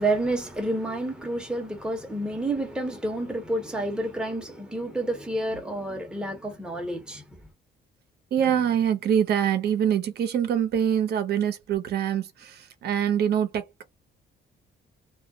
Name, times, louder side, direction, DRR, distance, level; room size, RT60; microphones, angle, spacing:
voice 1, 0.0-7.2, right 1 dB, 5° right, 0.9 m, -29 dB
voice 2, 8.3-13.9, right 9 dB, 60° right, 0.7 m, -24 dB
2.3 x 2.0 x 2.7 m
cardioid pair, 120°, 19 cm